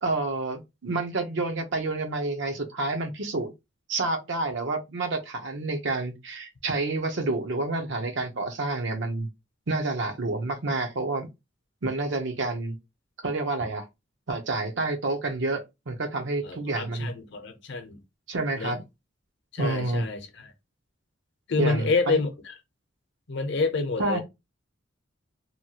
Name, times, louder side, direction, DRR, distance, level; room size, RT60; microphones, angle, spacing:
voice 1, 0.0-3.5 3.9-9.3 9.7-11.3 11.8-12.8 13.2-13.9 14.3-17.1 18.3-18.9 19.6-20.1 21.6-22.2 24.0-24.2, right 2 dB, 65° right, 0.7 m, -29 dB
voice 2, 16.4-18.0 18.6-18.7 19.5-20.5 21.5-22.3 23.3-24.2, left 3 dB, 60° left, 0.7 m, -28 dB
2.9 x 2.3 x 2.8 m
head